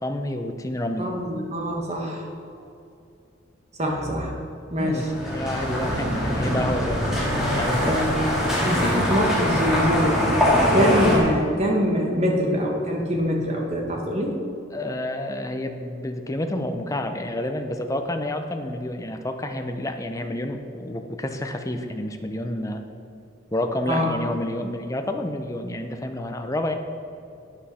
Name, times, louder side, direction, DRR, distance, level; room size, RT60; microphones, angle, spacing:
voice 1, 0.0-1.1 4.8-7.1 7.6-8.0 14.7-22.8 23.5-26.7, left 1 dB, 15° left, 5 dB, 0.7 m, -29 dB
voice 2, 1.0-2.3 3.8-4.3 4.7-5.1 7.8-10.2 10.7-14.3 23.9-24.1, equal, 30° right, 0 dB, 1.6 m, -24 dB
sound 1, 4.9-11.2, left 1 dB, ahead, 2.6 m, -23 dB
11.5 x 9.4 x 4.3 m, 2.6 s
head